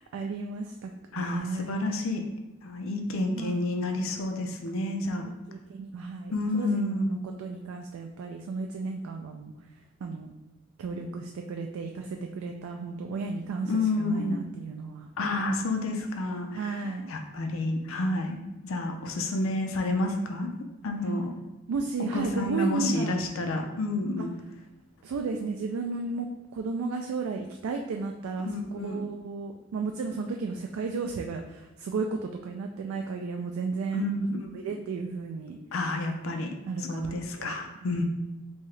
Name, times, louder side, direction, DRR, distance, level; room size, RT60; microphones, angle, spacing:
voice 1, 0.0-1.8 3.1-3.6 4.7-4.9 5.5-6.3 6.6-9.5 10.0-10.3 10.8-15.1 16.5-17.1 21.7-23.2 25.0-34.1 34.5-35.6 36.7-37.5, right 4 dB, 85° right, 3 dB, 0.3 m, -34 dB
voice 2, 1.1-2.2 2.6-5.3 6.3-7.2 13.6-14.4 15.2-20.5 20.8-21.3 22.1-24.3 28.4-29.0 33.9-34.8 35.7-38.0, left 2 dB, 75° left, 4 dB, 0.5 m, -30 dB
3.5 x 2.8 x 3.1 m, 1.1 s
head